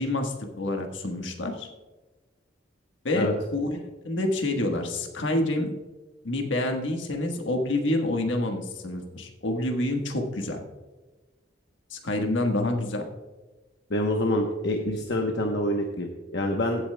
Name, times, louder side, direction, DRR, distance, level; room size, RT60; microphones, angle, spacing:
voice 1, 0.0-1.7 3.0-5.7 6.2-10.6 11.9-13.0, left 1 dB, 85° left, 3 dB, 1.4 m, -28 dB
voice 2, 13.9-16.8, left 1 dB, 60° left, 2 dB, 1.0 m, -26 dB
16.0 x 8.4 x 2.2 m, 1.2 s
head